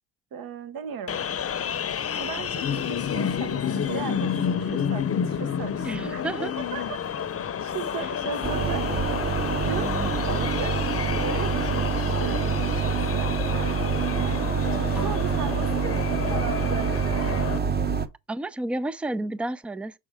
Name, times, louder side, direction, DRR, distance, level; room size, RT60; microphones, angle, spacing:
voice 1, 0.3-1.2 2.2-7.0 7.6-9.2 9.7-9.9 10.2-10.8 11.1-12.4 12.7-17.6, right 8 dB, 60° right, 1.1 m, -37 dB
sound 1, 1.1-17.6, left 8 dB, 35° left, 0.8 m, -30 dB
voice 2, 5.8-6.6 15.0-15.1 18.3-20.0, right 1 dB, 5° right, 0.4 m, -31 dB
sound 2, 8.4-18.1, right 6 dB, 25° right, 1.0 m, -26 dB
7.5 x 4.5 x 3.5 m
supercardioid pair, 65°, 41 cm